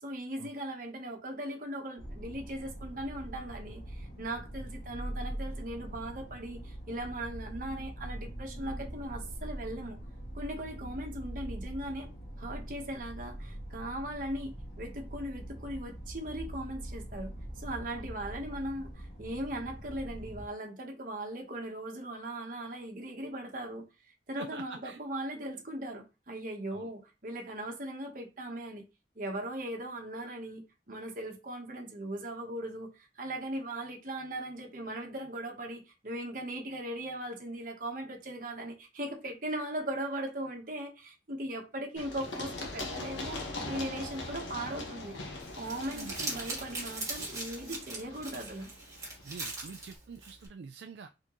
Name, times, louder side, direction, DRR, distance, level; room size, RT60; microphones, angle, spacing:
voice 1, 0.0-10.0 10.3-12.1 12.4-14.5 14.8-23.8 24.3-28.9 29.1-43.4 43.7-45.2 45.6-48.7, right 1 dB, 50° right, 1.2 m, -39 dB
sound 1, 2.0-20.5, right 1 dB, 50° left, 2.2 m, -42 dB
voice 2, 24.4-25.0 26.7-26.9 45.8-46.2 49.2-51.1, right 5 dB, 65° right, 0.4 m, -46 dB
Run, 42.0-49.6, left 2 dB, 90° left, 1.3 m, -41 dB
Crumpling crinkling, 45.4-50.5, right 2 dB, 20° right, 1.7 m, -40 dB
4.3 x 3.7 x 3.0 m
head